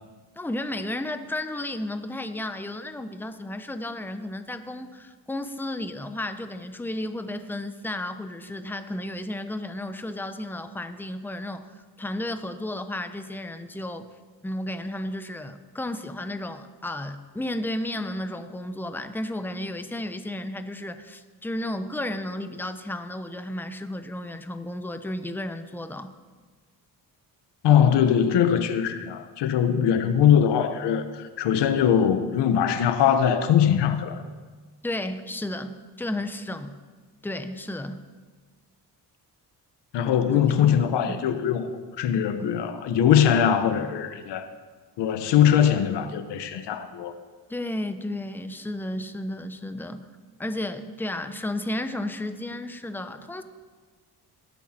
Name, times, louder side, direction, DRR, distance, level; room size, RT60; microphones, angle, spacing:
voice 1, 0.4-11.7 12.0-14.1 14.4-26.1 34.8-36.8 37.2-38.0 41.1-41.2 42.1-42.2 47.5-50.1 50.4-53.4, left 1 dB, 5° left, 9 dB, 0.9 m, -33 dB
voice 2, 27.6-34.2 39.9-44.5 45.0-47.1, left 9 dB, 85° left, 10 dB, 1.2 m, -21 dB
18.0 x 11.5 x 4.4 m, 1.4 s
cardioid pair, 90°, 41 cm